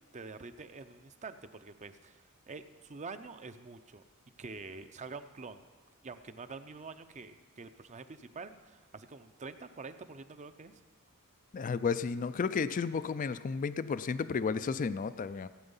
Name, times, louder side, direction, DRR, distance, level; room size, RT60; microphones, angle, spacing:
voice 1, 0.1-4.0 4.4-5.6 6.0-10.8, right 4 dB, 30° right, 10 dB, 0.6 m, -46 dB
voice 2, 11.5-15.5, left 5 dB, 35° left, 14 dB, 0.3 m, -32 dB
16.0 x 8.9 x 5.5 m, 1.3 s
head